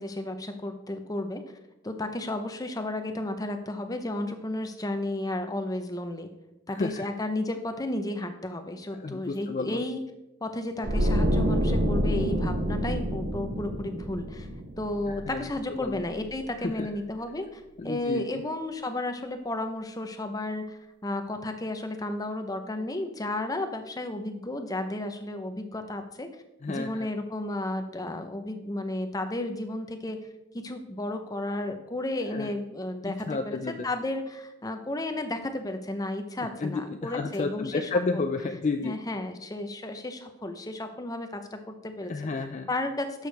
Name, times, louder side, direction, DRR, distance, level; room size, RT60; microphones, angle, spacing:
voice 1, 0.0-1.4 1.8-6.3 6.7-10.0 10.4-14.5 14.8-26.3 26.7-30.2 30.6-33.6 33.8-37.9 38.1-38.3 38.8-42.1 42.7-43.3, left 1 dB, 20° left, 7 dB, 0.8 m, -33 dB
voice 2, 6.7-7.0 9.0-9.8 15.1-15.5 15.8-16.0 16.6-16.9 17.8-18.4 26.6-27.1 32.3-32.5 33.1-33.8 36.4-39.0 42.1-42.7, left 3 dB, 35° left, 7 dB, 0.4 m, -31 dB
sound 1, 10.8-15.9 16.2-16.4, equal, 45° right, 1.0 m, -27 dB
11.5 x 6.5 x 3.4 m, 0.94 s
head